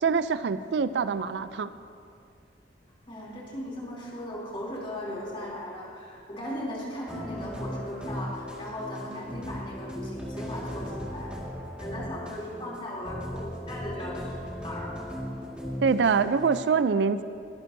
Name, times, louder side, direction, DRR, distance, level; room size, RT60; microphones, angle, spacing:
voice 1, 0.0-1.7 15.8-17.2, right 5 dB, 70° right, 13 dB, 0.4 m, -24 dB
voice 2, 3.1-11.3 11.8-14.3 14.6-14.9, left 1 dB, 30° left, -5 dB, 3.0 m, -37 dB
sound 1, 7.1-16.6, equal, 5° right, 1.9 m, -37 dB
22.0 x 11.0 x 2.7 m, 2.4 s
head